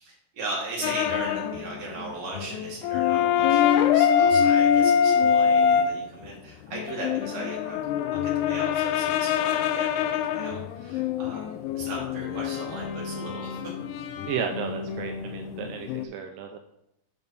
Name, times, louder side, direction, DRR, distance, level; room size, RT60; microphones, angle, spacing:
voice 1, 0.0-7.8 8.1-13.7, right 2 dB, 45° right, -4 dB, 2.8 m, -37 dB
sound 1, 0.8-1.6 1.9-2.0 2.3-5.9 6.7-16.0, left 8 dB, 90° left, 2.3 m, -24 dB
voice 2, 14.3-16.6, right 7 dB, 85° right, 4 dB, 2.2 m, -33 dB
7.3 x 5.7 x 4.0 m, 0.80 s
omnidirectional pair, 3.8 m